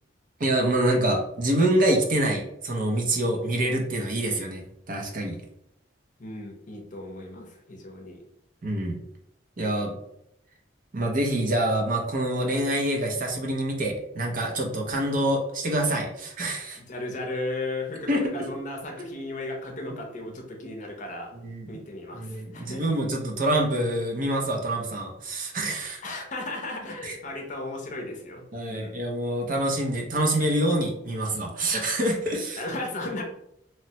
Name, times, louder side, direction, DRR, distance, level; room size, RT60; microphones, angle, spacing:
voice 1, 0.4-5.4 8.6-9.0 9.6-9.9 10.9-16.8 18.1-18.3 21.4-21.8 22.1-26.0 27.0-27.1 28.5-32.6, right 1 dB, 50° right, 1 dB, 0.6 m, -26 dB
voice 2, 6.2-8.2 16.7-21.3 21.7-22.9 26.0-28.4 28.7-29.0 32.6-33.2, left 2 dB, 45° left, 1 dB, 0.6 m, -35 dB
3.0 x 2.1 x 2.7 m, 0.79 s
head